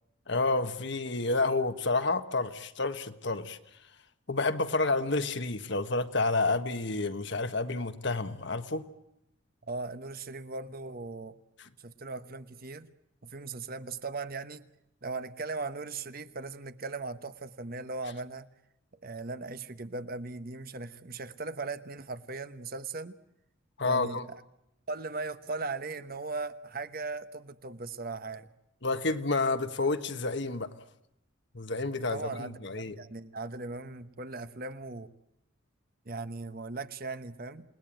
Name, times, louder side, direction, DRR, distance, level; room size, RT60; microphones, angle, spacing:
voice 1, 0.3-3.6 4.3-8.9 11.6-11.7 23.8-24.2 28.8-30.7 31.5-32.9, left 3 dB, 55° left, 9 dB, 1.4 m, -29 dB
voice 2, 9.6-11.4 11.8-12.9 13.2-14.6 15.0-18.5 19.0-23.2 23.8-24.4 24.9-28.5 32.1-35.1 36.0-37.6, right 3 dB, 45° right, 11 dB, 1.1 m, -38 dB
29.0 x 19.5 x 9.1 m, 0.84 s
head